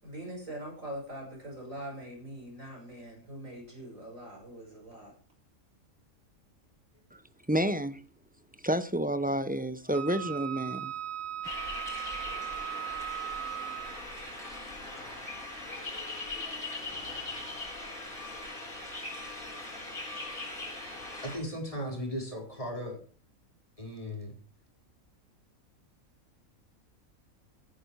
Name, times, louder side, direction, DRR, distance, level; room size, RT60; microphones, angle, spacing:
voice 1, 0.0-5.1, right 1 dB, 65° right, 6.6 m, -42 dB
voice 2, 7.5-8.0 8.6-10.9, right 1 dB, 10° right, 0.7 m, -29 dB
Wind instrument woodwind instrument, 9.9-14.1, right 11 dB, 45° right, 0.8 m, -38 dB
sound 1, 11.4-21.4, left 2 dB, 85° left, 7.3 m, -40 dB
voice 3, 21.2-23.0 23.8-24.3, equal, 25° left, 4.6 m, -36 dB
16.5 x 10.0 x 4.8 m
omnidirectional pair, 1.5 m